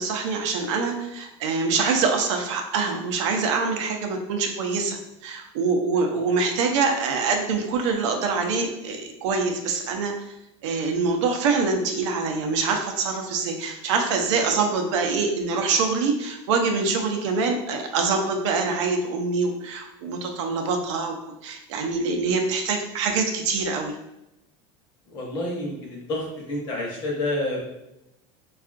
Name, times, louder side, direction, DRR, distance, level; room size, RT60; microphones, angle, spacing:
voice 1, 0.0-5.0 5.2-10.1 10.6-21.2 21.4-23.9, right 4 dB, 90° right, 3 dB, 0.5 m, -25 dB
voice 2, 25.1-27.6, left 1 dB, 30° left, -2 dB, 0.7 m, -29 dB
3.5 x 2.4 x 2.4 m, 0.89 s
cardioid pair, 175°, 15 cm